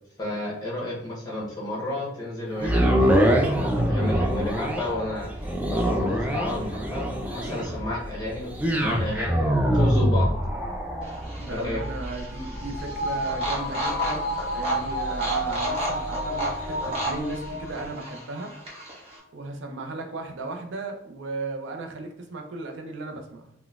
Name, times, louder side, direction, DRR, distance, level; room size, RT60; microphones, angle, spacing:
voice 1, 0.2-10.3 11.5-11.8, left 1 dB, 20° left, -4 dB, 0.9 m, -32 dB
sound 1, 2.6-16.8 17.3-17.4, equal, 10° right, 0.3 m, -25 dB
sound 2, 11.0-19.2, right 1 dB, 35° right, 0.9 m, -33 dB
voice 2, 11.4-14.3 14.5-18.5 19.3-23.5, right 2 dB, 80° right, 4 dB, 0.5 m, -36 dB
sound 3, 11.8-18.4 18.8-18.9, equal, 50° left, 0.5 m, -32 dB
3.8 x 2.1 x 2.3 m, 0.78 s
head